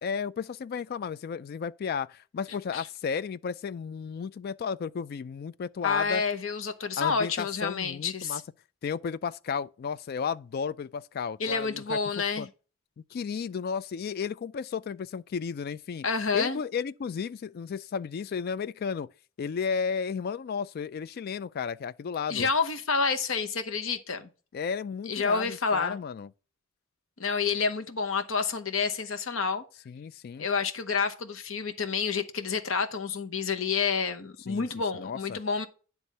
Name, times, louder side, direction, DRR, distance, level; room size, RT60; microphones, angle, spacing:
voice 1, 0.0-6.2 7.0-8.4 8.8-12.0 12.4-12.5 13.1-16.1 16.3-19.1 19.4-22.5 24.5-26.3 29.9-30.5 34.5-34.7 35.0-35.4, left 6 dB, 45° left, 0.3 m, -33 dB
voice 2, 5.8-8.4 11.4-12.5 16.0-16.6 22.3-24.3 25.1-26.0 27.2-29.6 30.4-35.7, left 5 dB, 65° left, 0.9 m, -29 dB
9.3 x 3.5 x 5.4 m
head